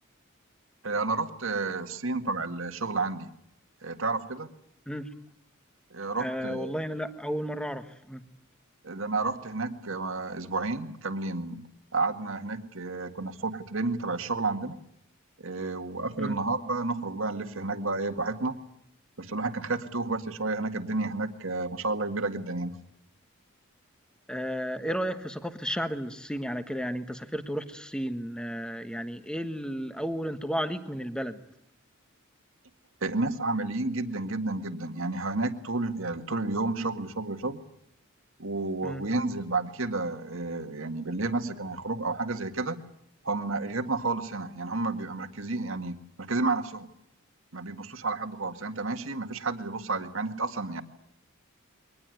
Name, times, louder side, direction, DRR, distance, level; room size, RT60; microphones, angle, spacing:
voice 1, 0.8-3.3 3.8-4.5 5.9-6.8 8.8-11.7 11.9-14.8 15.4-18.6 19.2-22.8 33.0-37.6 38.4-42.8 43.2-46.9 47.5-50.8, right 3 dB, 70° right, 8 dB, 1.9 m, -31 dB
voice 2, 6.2-8.2 16.2-16.4 24.3-31.4 38.8-39.0, equal, 5° left, 9 dB, 1.3 m, -33 dB
23.0 x 19.5 x 9.3 m, 0.74 s
head